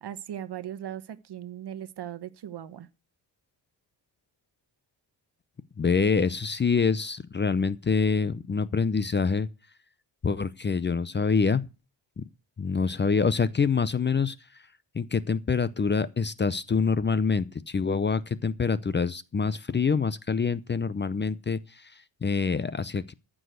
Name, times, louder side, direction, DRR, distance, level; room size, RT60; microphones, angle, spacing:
voice 1, 0.0-2.9, right 10 dB, 60° right, 1.1 m, -38 dB
voice 2, 5.8-9.5 10.2-11.7 12.2-12.3 12.6-14.3 14.9-21.9 22.2-23.1, left 5 dB, 25° left, 0.6 m, -26 dB
14.5 x 6.3 x 7.9 m
wide cardioid pair, 145°, 44 cm